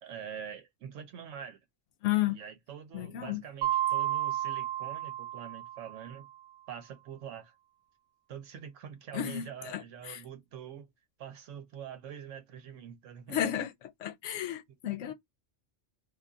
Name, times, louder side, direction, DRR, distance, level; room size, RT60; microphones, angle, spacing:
voice 1, 0.0-1.6 2.3-6.3 6.7-7.5 8.3-10.9 11.2-13.6, right 8 dB, 90° right, 1.0 m, -45 dB
voice 2, 2.0-2.4 2.9-3.4 9.1-10.2 13.3-13.7 14.0-15.1, left 12 dB, 85° left, 0.9 m, -32 dB
Mallet percussion, 3.6-6.2, right 12 dB, 65° right, 1.0 m, -32 dB
2.5 x 2.3 x 3.7 m
omnidirectional pair, 1.3 m